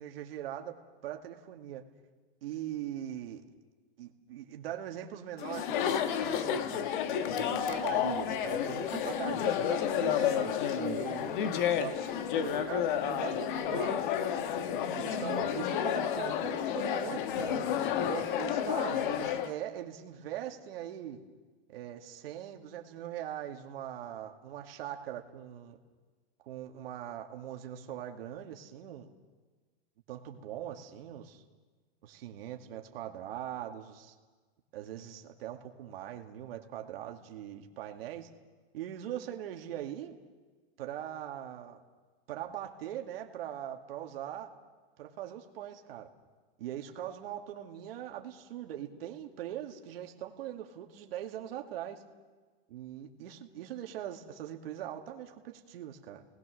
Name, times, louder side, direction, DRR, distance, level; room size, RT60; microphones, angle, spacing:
voice 1, 0.0-1.8 2.4-3.4 4.0-6.9 7.3-14.0 14.9-17.6 18.0-21.2 21.7-25.8 26.4-29.1 30.1-31.4 32.0-34.1 34.7-38.3 38.7-40.2 40.8-41.8 42.3-44.6 45.0-46.1 46.6-52.0 52.7-56.3, right 11 dB, 65° right, 3 dB, 2.2 m, -41 dB
Chatter, 5.4-19.5, left 9 dB, 50° left, 1.3 m, -31 dB
30.0 x 19.5 x 6.5 m, 1.4 s
supercardioid pair, 170°, 31 cm